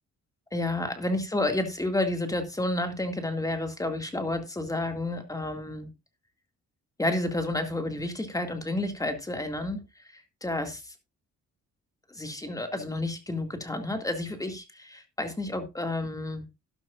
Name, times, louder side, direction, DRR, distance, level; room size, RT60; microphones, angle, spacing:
voice 1, 0.5-5.9 7.0-9.8 10.1-10.9 12.1-16.4, left 2 dB, 10° left, 2.2 m, -30 dB
12.5 x 11.5 x 2.5 m
cardioid pair, 120°, 30 cm